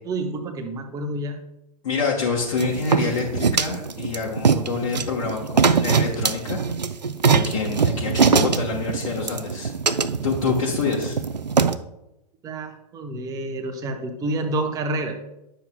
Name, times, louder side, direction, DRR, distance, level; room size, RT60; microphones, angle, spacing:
voice 1, 0.0-1.4 12.4-15.2, right 2 dB, 15° right, 5 dB, 0.8 m, -28 dB
voice 2, 1.8-6.9 7.2-9.7 10.2-11.2, left 4 dB, 55° left, -3 dB, 1.2 m, -27 dB
sound 1, 2.6-11.7, right 5 dB, 85° right, 0.5 m, -22 dB
9.9 x 6.9 x 2.3 m, 0.86 s
figure-of-eight pair, 105°, 21 cm